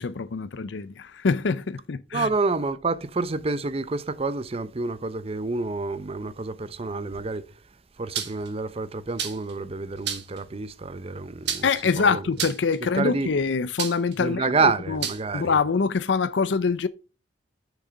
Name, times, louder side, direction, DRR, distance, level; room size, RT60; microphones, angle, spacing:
voice 1, 0.0-2.3 11.6-15.1 15.3-16.9, left 5 dB, 70° left, 0.5 m, -25 dB
voice 2, 2.1-7.4 8.0-11.7 12.0-12.2 12.8-13.3 14.2-15.6, right 3 dB, 30° right, 0.6 m, -28 dB
sound 1, 8.1-8.5 9.2-9.5 10.0-10.4 11.4-11.9 12.4-12.8 13.8-14.1 15.0-15.2, right 8 dB, 60° right, 1.4 m, -30 dB
6.8 x 6.1 x 5.1 m
head